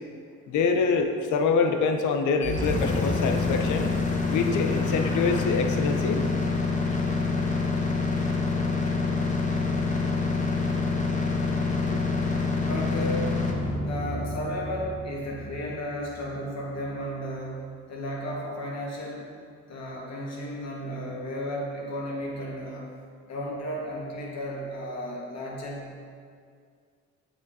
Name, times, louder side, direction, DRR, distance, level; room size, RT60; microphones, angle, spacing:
voice 1, 0.5-4.0 4.3-6.2, left 4 dB, 75° left, 5 dB, 0.7 m, -25 dB
sound 1, 2.4-16.4, left 3 dB, 25° left, 0.8 m, -27 dB
voice 2, 12.6-13.4 13.8-19.2 19.7-22.9 23.3-25.9, equal, 60° left, -3 dB, 1.6 m, -34 dB
7.9 x 5.9 x 2.7 m, 2.2 s
cardioid pair, 90°, 30 cm